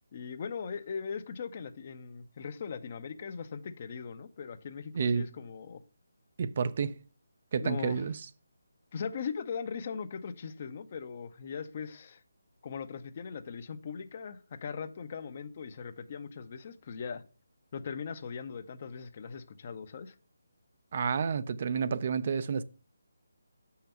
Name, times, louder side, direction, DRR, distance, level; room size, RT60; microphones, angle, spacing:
voice 1, 0.1-5.8 7.6-8.0 8.9-12.2 12.6-17.2 17.7-20.1, left 6 dB, 40° left, 0.6 m, -39 dB
voice 2, 4.9-5.2 6.4-7.0 7.5-8.2 20.9-22.6, right 6 dB, 40° right, 0.4 m, -30 dB
6.7 x 5.7 x 5.5 m
figure-of-eight pair, 150°, 0 cm